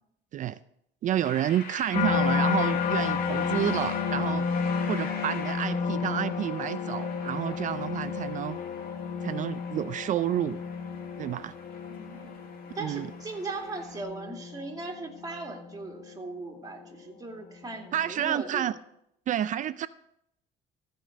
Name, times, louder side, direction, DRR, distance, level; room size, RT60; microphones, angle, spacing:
voice 1, 1.0-4.5 4.9-8.6 9.2-10.6 11.2-11.5 12.8-13.1 17.9-18.7 19.3-19.9, right 11 dB, 50° right, 15 dB, 0.4 m, -29 dB
sound 1, 1.2-14.0, left 5 dB, 60° left, 2.2 m, -44 dB
sound 2, 1.9-17.1 17.6-18.1, left 6 dB, 40° left, 0.9 m, -32 dB
voice 2, 11.9-12.3 12.7-18.7, right 3 dB, 20° right, 0 dB, 2.4 m, -38 dB
14.5 x 5.3 x 6.4 m, 0.75 s
cardioid pair, 110°, 17 cm